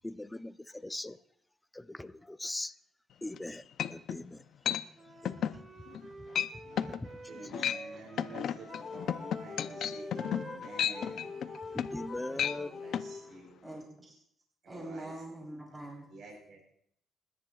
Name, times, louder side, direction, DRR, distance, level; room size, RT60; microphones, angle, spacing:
voice 1, 0.0-1.2 1.7-2.7 3.2-3.6 3.9-4.4 5.2-5.4 6.8-7.7 11.7-12.7, left 1 dB, 10° left, 0.6 m, -41 dB
sound 1, 3.3-3.4 3.8-4.2 4.7-4.8 5.3-5.6 5.9-6.1 6.4-6.5 6.8-7.0 7.4-7.8 8.2-12.1 12.3-12.6 12.9-13.1, left 10 dB, 70° left, 0.6 m, -32 dB
Wind instrument woodwind instrument, 4.9-13.4, right 2 dB, 40° right, 1.8 m, -49 dB
voice 2, 7.3-11.3 11.7-11.8 12.1-13.6 14.6-15.1 16.1-16.7, right 2 dB, 65° right, 4.0 m, -50 dB
sound 2, 8.7-13.6, left 5 dB, 50° left, 2.0 m, -44 dB
voice 3, 13.6-14.2 14.7-16.1, right 1 dB, 20° right, 3.9 m, -44 dB
29.5 x 10.5 x 2.5 m
cardioid pair, 90°, 0 cm